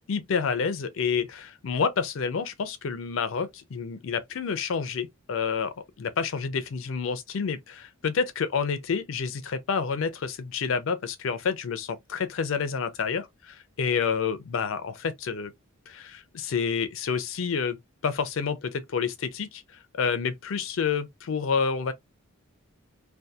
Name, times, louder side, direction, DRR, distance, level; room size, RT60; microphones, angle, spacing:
voice 1, 0.1-15.5 15.9-17.8 18.0-19.6 19.9-21.9, left 6 dB, 65° left, 0.4 m, -29 dB
2.7 x 2.3 x 2.2 m
head